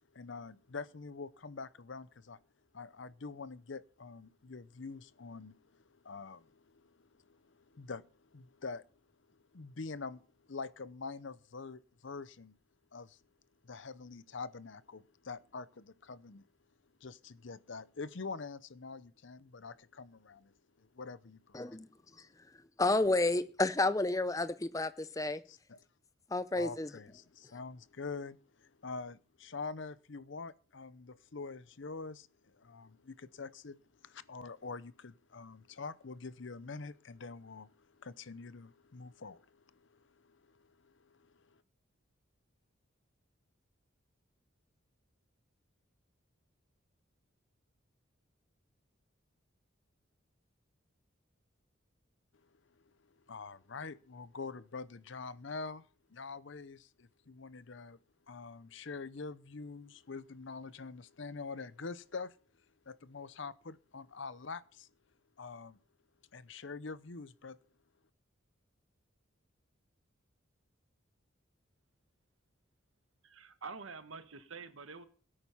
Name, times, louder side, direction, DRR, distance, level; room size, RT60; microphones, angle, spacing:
voice 1, 0.1-2.4 2.7-8.9 9.3-10.2 10.5-12.5 12.9-13.2 13.6-16.5 17.0-21.8 25.5-25.8 26.5-41.6 53.3-58.0 58.3-62.4 62.9-64.9 65.4-65.8 66.3-67.6, left 4 dB, 65° left, 0.7 m, -45 dB
voice 2, 21.5-21.9 22.8-25.4 26.3-26.9, left 2 dB, 15° left, 0.6 m, -30 dB
voice 3, 73.2-75.0, right 4 dB, 85° right, 1.2 m, -47 dB
17.0 x 8.8 x 5.7 m
head